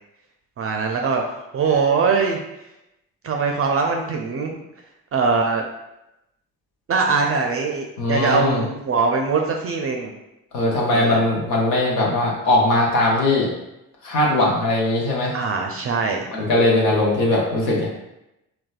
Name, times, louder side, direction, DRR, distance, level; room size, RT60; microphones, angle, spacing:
voice 1, 0.6-2.4 3.2-4.6 5.1-5.6 6.9-10.1 10.9-11.2 15.3-16.2, right 4 dB, 35° right, 2 dB, 0.4 m, -22 dB
voice 2, 8.0-8.6 10.5-13.5 14.0-15.4 16.3-17.9, left 2 dB, 80° left, -3 dB, 0.8 m, -20 dB
3.9 x 2.2 x 2.3 m, 0.90 s
hypercardioid pair, 50°, 43 cm